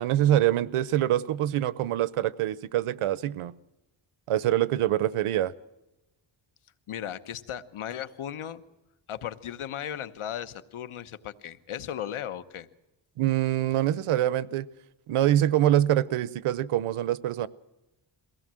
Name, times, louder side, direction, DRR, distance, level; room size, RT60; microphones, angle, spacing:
voice 1, 0.0-3.5 4.3-5.5 13.2-14.7 15.1-17.5, right 12 dB, 85° right, 19 dB, 0.8 m, -25 dB
voice 2, 6.9-8.6 9.1-12.7, left 10 dB, 75° left, 12 dB, 1.2 m, -36 dB
22.5 x 17.0 x 7.6 m, 0.99 s
cardioid pair, 110°, 50 cm